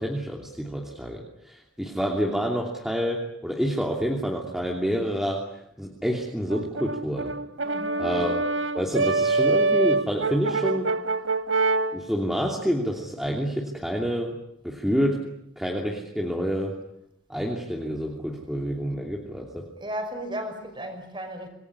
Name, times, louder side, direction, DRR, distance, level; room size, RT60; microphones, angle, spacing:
voice 1, 0.0-5.4 5.8-7.4 8.0-8.4 8.7-10.9 11.9-14.3 14.6-15.2 15.6-16.7 17.3-19.7, equal, ahead, 2.9 m, -28 dB
Brass instrument, 6.5-12.0, right 3 dB, 80° right, 1.1 m, -25 dB
voice 2, 7.6-8.1 19.8-21.5, equal, 25° right, 5.7 m, -35 dB
26.5 x 21.0 x 10.0 m
head